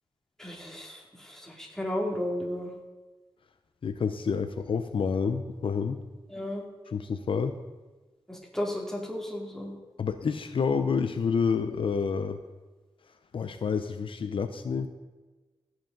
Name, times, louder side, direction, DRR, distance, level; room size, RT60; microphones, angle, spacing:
voice 1, 0.4-2.7 6.3-6.6 8.3-9.8, left 1 dB, 5° left, -1 dB, 2.6 m, -34 dB
voice 2, 3.8-6.0 6.9-7.6 10.0-12.4 13.3-14.9, left 5 dB, 65° left, 8 dB, 0.6 m, -28 dB
16.0 x 8.2 x 3.9 m, 1.3 s
wide cardioid pair, 85°, 10 cm